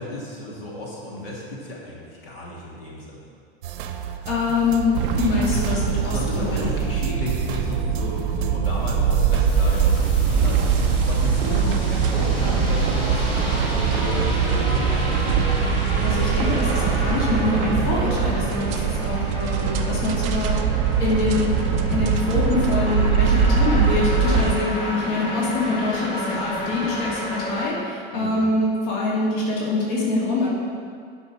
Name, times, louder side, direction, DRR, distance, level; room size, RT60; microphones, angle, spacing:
voice 1, 0.0-3.3 6.0-15.4 28.1-28.4, left 1 dB, 65° left, -4 dB, 2.5 m, -33 dB
sound 1, 3.6-10.1, right 9 dB, 55° right, 0.8 m, -33 dB
voice 2, 4.3-6.6 16.0-20.6 21.0-21.6 21.9-30.5, left 3 dB, 45° left, -5 dB, 2.5 m, -24 dB
sound 2, 4.9-24.5, right 6 dB, 25° right, 0.4 m, -22 dB
sound 3, 9.4-27.7, equal, 20° left, 2.1 m, -32 dB
11.5 x 5.7 x 6.1 m, 2.2 s
supercardioid pair, 170°, 31 cm